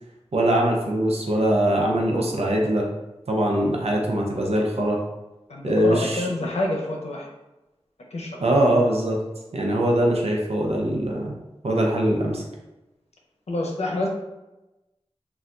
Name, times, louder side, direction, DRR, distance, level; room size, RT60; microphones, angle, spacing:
voice 1, 0.3-2.9 3.3-5.0 5.6-6.3 8.4-9.2 9.5-11.3 11.6-12.4, right 1 dB, 70° right, -1 dB, 0.6 m, -22 dB
voice 2, 5.5-7.3 8.1-8.7 13.5-14.1, left 1 dB, 75° left, -1 dB, 0.6 m, -28 dB
2.4 x 2.2 x 3.7 m, 1.0 s
wide cardioid pair, 55°, 11 cm